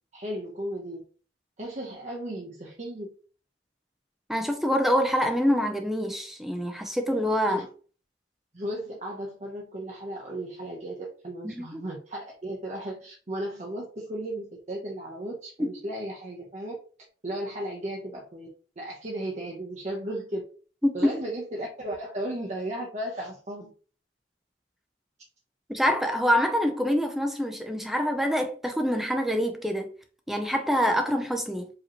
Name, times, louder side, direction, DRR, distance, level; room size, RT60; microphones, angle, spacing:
voice 1, 0.1-1.0 1.6-3.1 7.5-7.6 8.5-16.7 17.2-18.5 18.8-20.4 20.9-23.7, right 1 dB, 40° right, 0.8 m, -35 dB
voice 2, 4.3-7.7 11.4-11.8 15.6-15.7 20.8-21.2 25.7-29.9 30.3-31.7, equal, ahead, 0.5 m, -25 dB
4.9 x 3.0 x 3.0 m
head